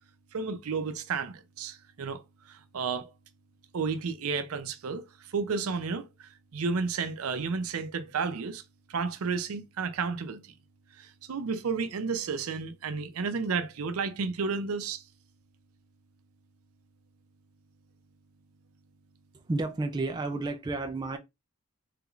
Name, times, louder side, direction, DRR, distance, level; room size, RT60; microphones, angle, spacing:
voice 1, 0.3-2.2 2.5-3.1 3.7-8.6 8.9-10.5 11.0-15.0, right 5 dB, 85° right, 0.5 m, -32 dB
voice 2, 19.5-21.2, right 2 dB, 20° right, 0.3 m, -31 dB
3.3 x 3.0 x 2.4 m
head